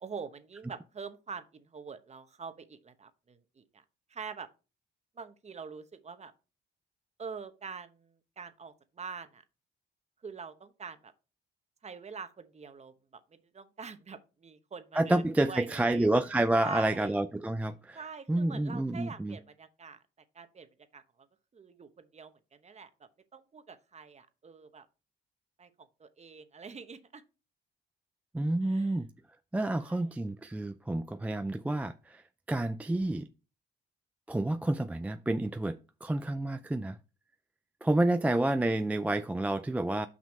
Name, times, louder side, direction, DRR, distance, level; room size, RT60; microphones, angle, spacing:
voice 1, 0.0-3.8 4.1-4.5 5.2-6.3 7.2-9.4 10.2-11.1 11.8-13.2 13.5-16.1 16.6-17.1 17.9-20.0 20.3-20.7 20.9-21.0 21.5-24.9 25.6-27.2 28.6-29.0 29.8-30.1, right 5 dB, 35° right, 1.0 m, -45 dB
voice 2, 14.9-18.0 18.3-19.4 28.3-29.1 29.5-32.2 32.5-33.3 34.3-37.0 37.8-40.1, right 1 dB, 5° right, 0.3 m, -29 dB
6.2 x 5.4 x 4.2 m
cardioid pair, 90°, 20 cm